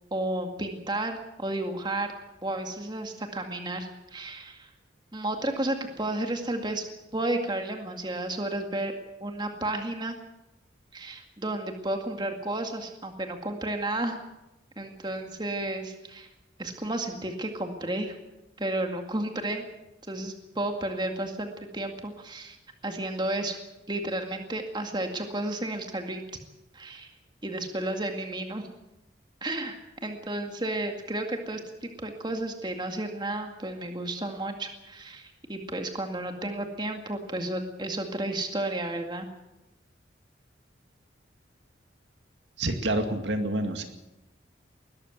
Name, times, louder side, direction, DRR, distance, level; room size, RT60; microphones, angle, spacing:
voice 1, 0.1-2.1 2.4-4.7 5.1-6.9 7.1-8.9 9.2-10.2 10.9-14.2 14.8-16.3 16.6-18.2 18.6-19.7 20.1-22.6 22.8-23.6 23.9-26.2 26.7-27.1 27.4-28.7 29.4-29.8 30.0-39.3, right 1 dB, 25° right, 4 dB, 2.1 m, -32 dB
voice 2, 42.6-43.8, right 1 dB, 75° right, 6 dB, 2.2 m, -28 dB
20.5 x 13.5 x 9.3 m, 0.94 s
head